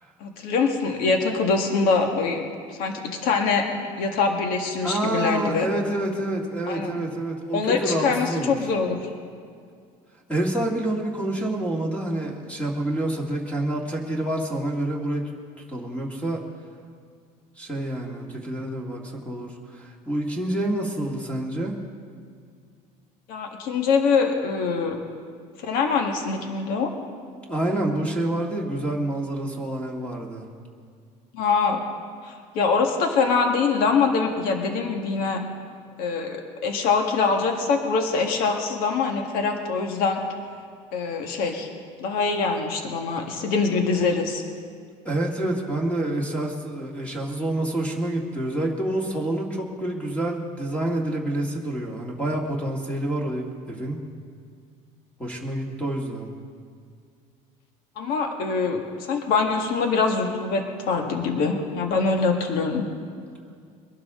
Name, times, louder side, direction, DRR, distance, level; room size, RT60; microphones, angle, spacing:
voice 1, 0.2-2.5 2.8-3.6 4.0-5.7 6.7-7.0 7.5-9.0 23.3-25.0 25.6-26.9 31.3-31.8 32.3-35.4 36.0-40.2 40.9-41.7 42.0-44.4 58.0-62.9, left 4 dB, 75° left, 3 dB, 1.8 m, -24 dB
voice 2, 4.8-8.5 10.3-15.3 15.7-16.4 17.6-21.8 27.5-30.5 45.0-54.0 55.2-56.3, right 1 dB, 10° left, -1 dB, 1.9 m, -28 dB
23.0 x 12.0 x 3.8 m, 2.2 s
cardioid pair, 140°, 15 cm